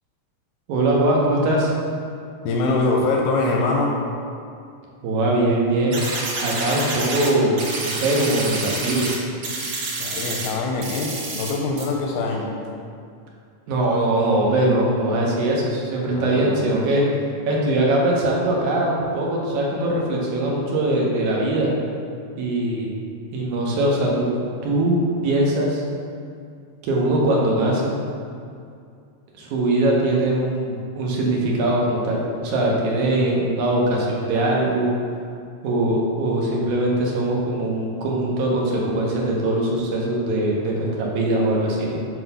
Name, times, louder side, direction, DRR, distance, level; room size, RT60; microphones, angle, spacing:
voice 1, 0.7-1.7 5.0-6.0 6.4-9.1 13.7-17.0 17.5-21.7 22.4-22.9 23.3-24.3 24.6-25.8 26.8-28.0 29.4-34.9 35.6-42.0, right 1 dB, 85° right, -3 dB, 2.4 m, -21 dB
voice 2, 2.4-4.0 10.0-12.5 16.1-17.0, left 3 dB, 85° left, -1 dB, 2.0 m, -24 dB
sound 1, 5.9-7.3 7.6-9.1 9.4-10.5 10.8-11.5 11.8-11.9, right 2 dB, 65° right, 1.1 m, -28 dB
7.6 x 2.9 x 5.4 m, 2.4 s
omnidirectional pair, 3.4 m